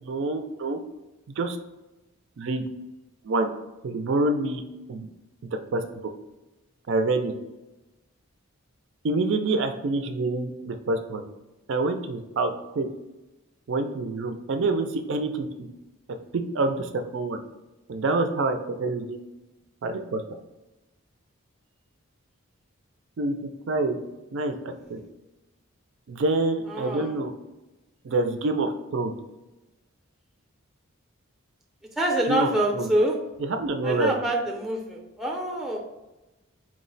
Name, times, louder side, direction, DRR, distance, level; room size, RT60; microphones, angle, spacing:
voice 1, 0.0-0.8 1.4-1.6 2.4-2.6 3.2-3.5 3.8-4.6 4.9-5.1 5.7-5.8 6.9-7.3 9.0-11.2 11.7-12.9 13.7-15.7 16.3-17.4 17.9-19.2 19.8-20.2 23.2-23.4 23.7-24.0 24.3-25.0 26.1-27.3 28.0-29.1 32.2-32.9 33.4-34.1, right 2 dB, 60° right, 6 dB, 0.4 m, -26 dB
voice 2, 26.7-27.1 32.0-33.2 33.8-35.8, right 1 dB, ahead, -1 dB, 0.5 m, -26 dB
4.7 x 2.1 x 3.8 m, 1.0 s
head